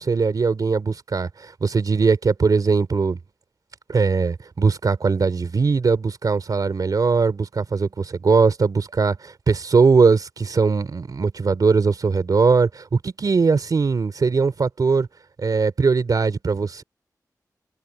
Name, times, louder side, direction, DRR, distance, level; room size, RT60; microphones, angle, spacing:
voice 1, 0.0-3.2 3.9-15.1 15.4-16.8, right 4 dB, 65° right, 3.4 m, -20 dB
open air
wide cardioid pair, 115°, 7 cm